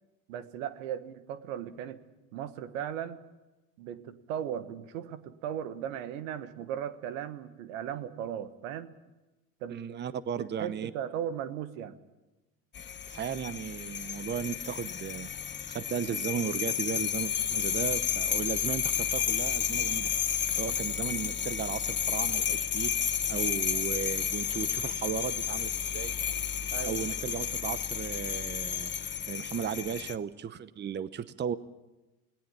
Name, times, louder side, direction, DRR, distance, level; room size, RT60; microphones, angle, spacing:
voice 1, 0.3-2.0 2.3-3.2 3.8-8.9 9.6-10.0 10.4-11.9 26.7-27.0, right 9 dB, 75° right, 13 dB, 1.5 m, -37 dB
voice 2, 9.7-10.9 13.1-20.1 20.5-26.1 26.6-28.9 29.3-31.6, right 8 dB, 25° right, 16 dB, 0.9 m, -36 dB
sound 1, 12.7-30.2, left 8 dB, 25° left, 1.0 m, -31 dB
19.5 x 18.0 x 8.9 m, 1.1 s
hypercardioid pair, 80°, 40 cm